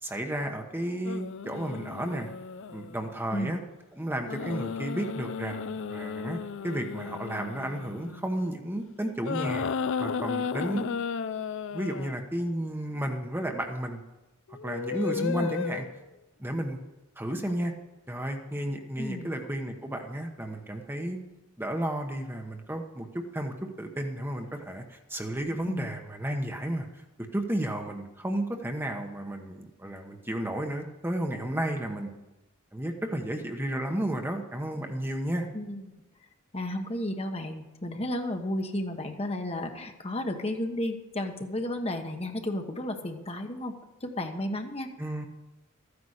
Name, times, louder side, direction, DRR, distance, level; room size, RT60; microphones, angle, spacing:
voice 1, 0.0-2.3 2.7-3.6 3.9-9.7 10.0-10.9 11.7-14.0 14.6-15.9 16.4-16.8 17.2-17.7 18.1-21.2 21.6-27.0 27.3-32.1 32.7-35.5 45.0-45.3, right 1 dB, 10° right, 4 dB, 1.0 m, -32 dB
sound 1, 1.0-3.2 4.2-8.5 9.2-12.2 14.5-16.1 17.3-17.5, left 6 dB, 65° left, 0.5 m, -34 dB
voice 2, 15.2-15.5 19.0-19.3 25.7-25.9 35.5-35.9 36.5-43.7 44.0-44.9, left 1 dB, 30° left, 5 dB, 1.2 m, -33 dB
14.0 x 9.7 x 6.5 m, 1.1 s
head